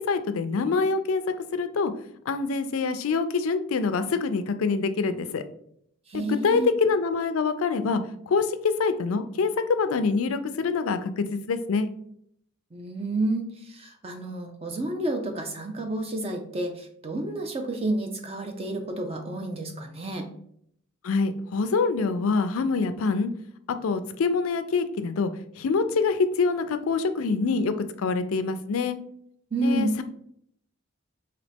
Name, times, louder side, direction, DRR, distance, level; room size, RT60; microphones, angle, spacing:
voice 1, 0.1-1.2 1.5-1.9 2.3-5.4 6.1-8.0 8.3-11.9 21.0-23.3 23.8-25.3 25.6-27.7 28.0-29.0 29.6-30.0, left 4 dB, 75° left, 10 dB, 0.4 m, -25 dB
voice 2, 6.1-6.7 12.7-20.3 29.5-29.9, right 2 dB, 30° right, 5 dB, 0.5 m, -30 dB
3.9 x 2.8 x 3.4 m, 0.68 s
head